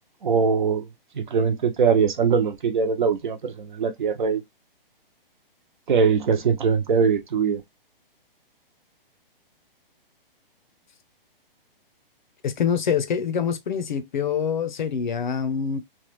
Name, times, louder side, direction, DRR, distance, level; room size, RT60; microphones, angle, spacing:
voice 1, 0.2-0.9 1.1-4.4 5.9-7.6, right 5 dB, 55° right, 0.9 m, -22 dB
voice 2, 12.4-15.8, left 7 dB, 55° left, 0.7 m, -25 dB
3.1 x 2.4 x 3.0 m
hypercardioid pair, 165°, 29 cm